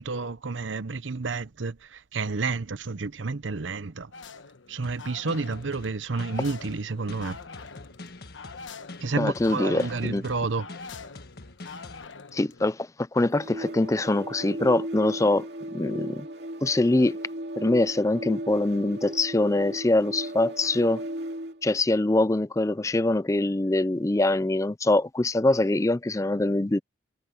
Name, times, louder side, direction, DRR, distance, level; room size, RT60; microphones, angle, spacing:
voice 1, 0.0-4.1 4.7-7.4 9.0-10.7, right 4 dB, 90° right, 0.8 m, -30 dB
sound 1, 4.1-12.7, left 4 dB, 90° left, 1.2 m, -45 dB
sound 2, 4.8-12.0, left 2 dB, 55° left, 1.5 m, -45 dB
voice 2, 9.2-10.2 12.3-16.3 16.6-17.2 17.6-21.0 21.6-26.8, left 2 dB, 15° left, 0.4 m, -24 dB
sound 3, 13.2-21.6, right 1 dB, 60° right, 2.8 m, -36 dB
head